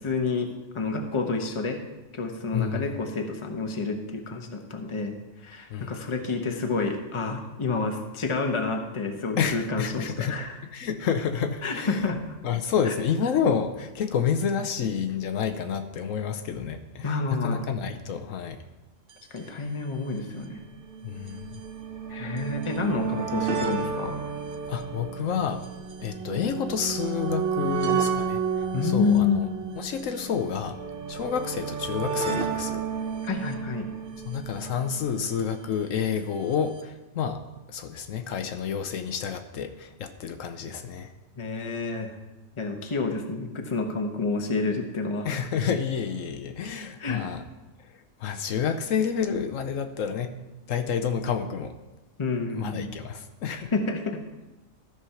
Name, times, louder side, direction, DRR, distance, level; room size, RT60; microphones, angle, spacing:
voice 1, 0.0-1.8 2.1-5.1 5.4-10.6 11.6-12.2 12.8-13.0 17.0-17.6 19.3-20.6 22.1-24.1 28.7-29.4 33.2-33.9 41.4-42.2 42.6-45.3 47.0-47.2 52.2-52.9 53.7-54.2, left 4 dB, 25° left, 4 dB, 0.9 m, -29 dB
voice 2, 2.5-2.9 5.7-6.0 9.4-10.4 10.7-12.0 12.4-18.6 21.0-21.6 24.7-25.6 26.0-28.4 28.8-29.5 29.8-30.8 31.1-32.8 34.3-37.4 37.7-41.1 45.2-47.4 48.2-50.3 50.7-51.7 52.5-53.7, left 7 dB, 75° left, 7 dB, 1.1 m, -29 dB
sound 1, 19.1-19.2 19.4-19.5 20.3-35.6 36.5-36.6 36.8-36.9, right 6 dB, 50° right, 0.9 m, -32 dB
13.5 x 4.8 x 5.7 m, 1.1 s
omnidirectional pair, 1.4 m